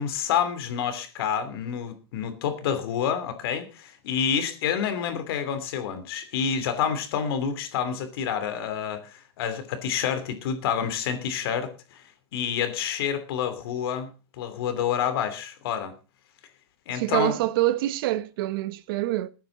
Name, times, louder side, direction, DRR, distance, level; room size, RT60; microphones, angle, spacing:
voice 1, 0.0-12.0 12.3-14.1 14.4-15.9 16.9-17.4, left 8 dB, 65° left, 3.0 m, -28 dB
voice 2, 16.9-19.3, right 15 dB, 60° right, 1.0 m, -26 dB
21.5 x 9.4 x 3.9 m
supercardioid pair, 150°, 13 cm